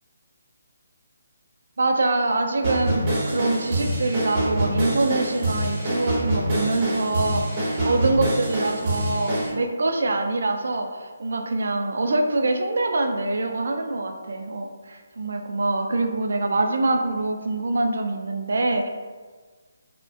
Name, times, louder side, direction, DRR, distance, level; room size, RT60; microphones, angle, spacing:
voice 1, 1.8-18.9, right 2 dB, 70° right, 4 dB, 0.3 m, -25 dB
sound 1, 2.6-9.5, right 1 dB, 30° right, 0.7 m, -25 dB
2.4 x 2.1 x 2.4 m, 1.4 s
hypercardioid pair, 160°, 0 cm